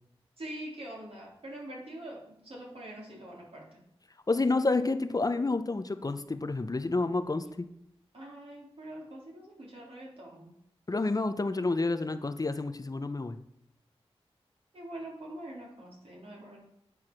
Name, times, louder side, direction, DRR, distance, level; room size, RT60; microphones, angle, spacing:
voice 1, 0.4-3.8 8.1-10.5 14.7-16.6, right 1 dB, 65° right, -4 dB, 3.4 m, -44 dB
voice 2, 4.3-7.7 10.9-13.4, left 3 dB, 35° left, 9 dB, 0.6 m, -29 dB
9.4 x 4.7 x 6.0 m, 0.76 s
cardioid pair, 55°, 11 cm